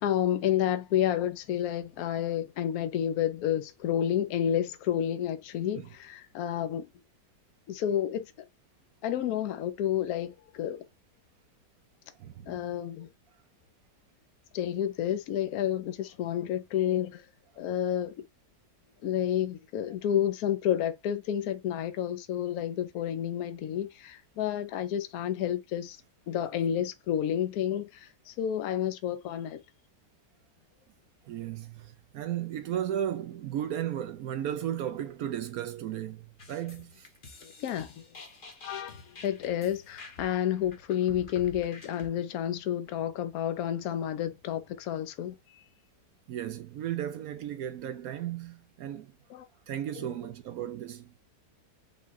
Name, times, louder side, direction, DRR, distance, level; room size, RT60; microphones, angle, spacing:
voice 1, 0.0-6.9 7.7-8.3 9.0-10.8 12.5-13.1 14.5-17.2 17.6-18.1 19.0-26.0 26.3-29.6 37.4-38.1 38.6-45.6 49.3-49.5 50.0-50.2, left 10 dB, 65° left, 1.1 m, -30 dB
voice 2, 12.2-12.6 31.2-37.1 46.3-49.1 49.7-51.1, right 11 dB, 70° right, 0.9 m, -35 dB
sound 1, 36.4-42.1, left 3 dB, 35° left, 1.0 m, -49 dB
5.5 x 2.3 x 3.9 m
omnidirectional pair, 1.9 m